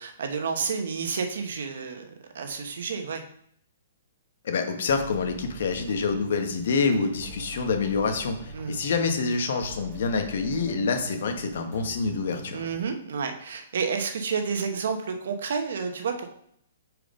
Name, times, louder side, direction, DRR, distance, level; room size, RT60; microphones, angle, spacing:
voice 1, 0.0-2.1 2.3-3.2 8.5-8.8 12.5-16.3, right 5 dB, 70° right, 5 dB, 1.0 m, -30 dB
voice 2, 4.4-12.6, left 4 dB, 65° left, 5 dB, 1.1 m, -27 dB
sound 1, 4.9-12.8, right 4 dB, 20° right, 1.0 m, -43 dB
5.2 x 4.6 x 5.1 m, 0.67 s
hypercardioid pair, 160°, 0 cm